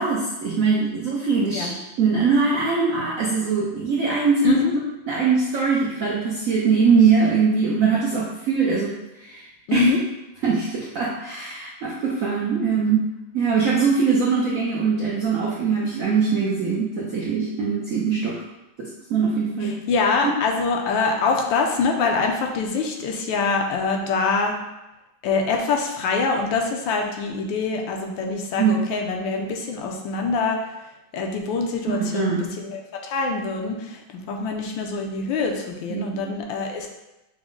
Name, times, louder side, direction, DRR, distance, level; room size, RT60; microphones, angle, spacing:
voice 1, 0.0-4.6 5.1-9.9 10.4-13.1 13.3-18.4 18.8-19.8 28.6-28.7 31.9-32.4 35.9-36.2, right 5 dB, 75° right, -5 dB, 0.7 m, -22 dB
voice 2, 4.4-4.7 9.7-10.0 19.6-24.5 25.2-30.7 31.1-32.4 32.6-36.9, left 4 dB, 75° left, 2 dB, 1.3 m, -24 dB
6.0 x 2.1 x 3.7 m, 0.98 s
omnidirectional pair, 2.2 m